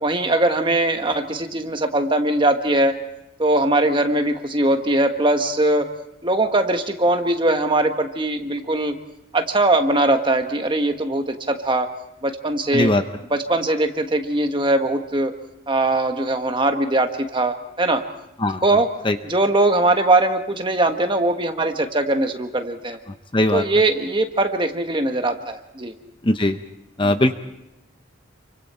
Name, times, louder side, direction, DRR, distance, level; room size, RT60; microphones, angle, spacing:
voice 1, 0.0-3.0 3.4-5.9 6.2-9.0 9.3-11.9 12.2-12.9 13.3-15.3 15.7-18.1 18.6-18.9 19.2-23.0 23.5-25.9 27.0-27.1, right 2 dB, 25° right, 5 dB, 1.4 m, -21 dB
voice 2, 23.3-23.6 26.2-26.6 27.0-27.3, left 1 dB, 25° left, 8 dB, 0.7 m, -19 dB
28.5 x 24.5 x 4.4 m, 0.85 s
head